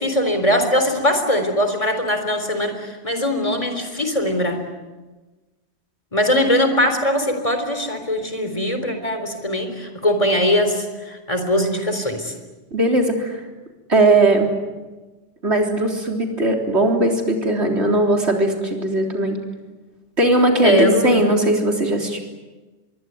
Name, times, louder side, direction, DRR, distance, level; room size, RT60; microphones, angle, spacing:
voice 1, 0.0-4.6 6.1-12.3 20.6-21.2, left 1 dB, 30° left, 7 dB, 3.9 m, -21 dB
voice 2, 12.7-13.4 13.9-14.5 15.4-19.4 20.2-22.2, right 1 dB, 75° right, 2 dB, 4.1 m, -18 dB
25.0 x 22.5 x 9.5 m, 1.2 s
omnidirectional pair, 1.1 m